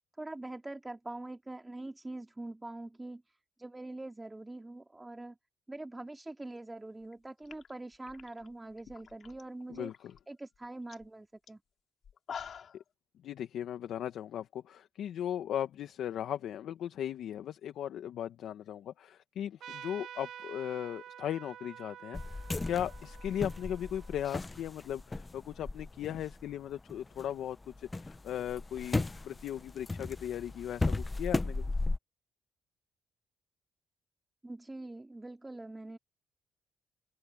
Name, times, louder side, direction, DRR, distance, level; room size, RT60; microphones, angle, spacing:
voice 1, 0.2-3.2 3.6-5.4 5.7-9.9 10.3-11.6 34.4-36.0, right 2 dB, 15° right, 3.1 m, -44 dB
sound 1, 7.0-7.1 7.4-9.4 9.7-10.2 10.5-10.6 10.9-11.1 11.5-11.6 12.0-12.8, left 7 dB, 55° left, 4.9 m, -46 dB
voice 2, 13.2-31.7, left 10 dB, 75° left, 1.4 m, -37 dB
Trumpet, 19.6-24.7, right 9 dB, 70° right, 1.6 m, -49 dB
sound 2, 22.1-27.3 27.6-32.0, left 2 dB, 20° left, 0.7 m, -36 dB
cardioid pair, 90°, 0 cm